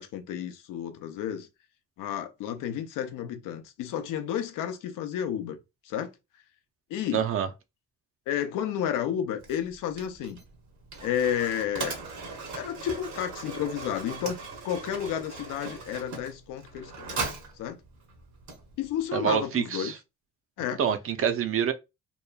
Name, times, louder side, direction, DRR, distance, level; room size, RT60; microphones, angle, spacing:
voice 1, 0.0-1.5 2.0-5.6 5.8-6.1 6.9-7.2 8.3-10.4 11.0-12.0 12.5-14.4 14.6-17.3 17.6-17.8 18.8-19.9 20.6-20.8, left 9 dB, 80° left, 0.6 m, -31 dB
voice 2, 7.1-7.5 19.1-20.0 20.8-21.7, right 8 dB, 45° right, 0.5 m, -26 dB
Mechanisms, 9.4-19.1, right 4 dB, 65° right, 0.9 m, -39 dB
2.9 x 2.2 x 2.2 m
cardioid pair, 75°, 31 cm